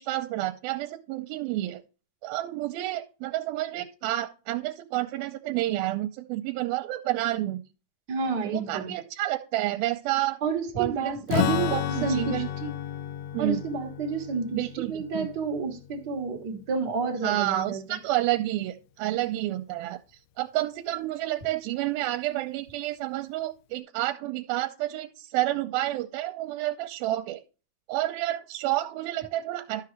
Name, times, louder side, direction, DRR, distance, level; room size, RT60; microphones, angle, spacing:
voice 1, 0.0-1.8 2.2-7.6 8.4-10.4 10.8-12.5 13.3-13.6 14.5-15.3 17.2-20.0 20.4-27.4 27.9-29.9, right 15 dB, 85° right, 2.5 m, -29 dB
voice 2, 8.1-9.0 10.4-12.7 13.4-17.8, right 5 dB, 65° right, 1.0 m, -30 dB
Strum, 11.3-16.9, left 12 dB, 90° left, 2.6 m, -32 dB
12.5 x 5.8 x 3.2 m
omnidirectional pair, 4.3 m